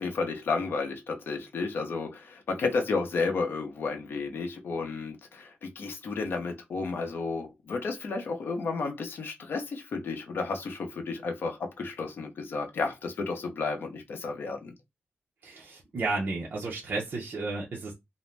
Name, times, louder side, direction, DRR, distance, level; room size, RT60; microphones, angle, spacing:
voice 1, 0.0-14.7, left 4 dB, 60° left, 0.6 m, -32 dB
voice 2, 15.4-17.9, right 3 dB, 45° right, 0.6 m, -32 dB
2.5 x 2.1 x 3.2 m
wide cardioid pair, 170°, 4 cm